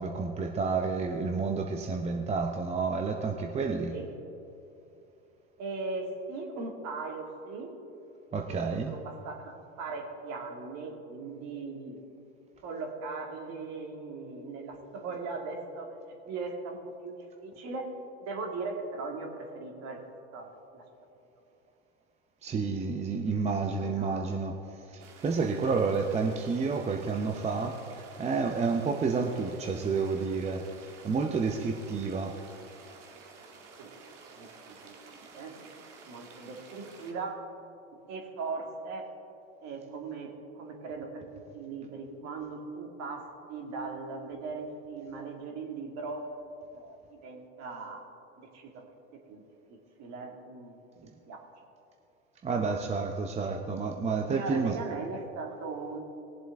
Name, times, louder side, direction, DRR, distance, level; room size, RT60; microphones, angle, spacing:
voice 1, 0.0-4.0 8.3-8.9 22.4-24.6 24.8-32.4 52.4-54.8, right 4 dB, 20° right, 2 dB, 0.7 m, -30 dB
voice 2, 5.6-7.7 8.4-12.0 12.6-15.9 16.2-17.9 18.2-20.0 20.3-20.8 23.8-24.4 33.8-33.9 34.4-35.0 35.3-35.6 36.1-37.4 37.9-39.1 39.6-46.3 46.7-48.1 48.4-48.8 49.1-49.4 50.0-51.4 53.4-53.6 54.0-56.0, right 4 dB, 45° right, 2 dB, 2.2 m, -39 dB
sound 1, 25.0-37.1, right 4 dB, 75° right, 1.8 m, -51 dB
19.5 x 7.6 x 3.5 m, 2.8 s
hypercardioid pair, 100°, 36 cm